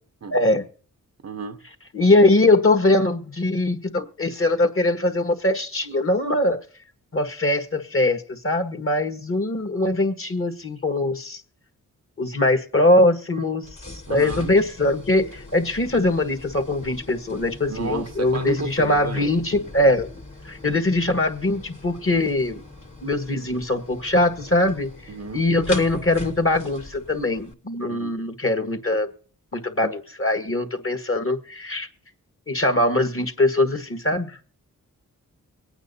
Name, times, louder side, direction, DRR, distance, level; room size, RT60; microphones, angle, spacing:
voice 1, 0.3-0.6 1.9-6.6 7.1-11.4 12.2-13.7 14.1-20.1 20.4-22.6 23.0-29.1 29.5-31.9 32.5-34.4, left 2 dB, 35° left, 1.6 m, -22 dB
voice 2, 1.2-1.7 14.1-14.5 17.7-19.3 19.8-20.0 20.7-20.8 25.1-25.5 27.9-28.1, right 5 dB, 45° right, 0.8 m, -33 dB
sound 1, 13.6-27.5, left 2 dB, 50° left, 2.4 m, -41 dB
23.5 x 9.0 x 2.7 m
cardioid pair, 40°, 37 cm